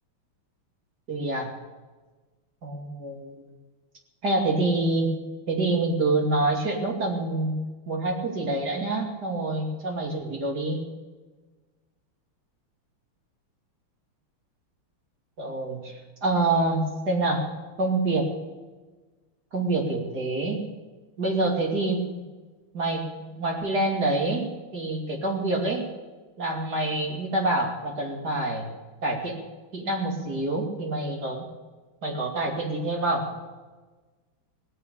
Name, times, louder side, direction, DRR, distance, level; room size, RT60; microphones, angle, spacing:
voice 1, 1.1-1.5 2.6-3.4 4.2-5.2 5.5-7.6 7.9-10.9 15.4-17.4 17.8-18.3 19.5-20.6 21.2-22.2 22.7-23.1 23.4-24.5 24.7-25.9 26.4-28.7 29.0-29.4 29.7-31.4 32.0-33.3, right 2 dB, 50° right, 0 dB, 3.2 m, -26 dB
18.0 x 8.1 x 8.5 m, 1.3 s
omnidirectional pair, 2.3 m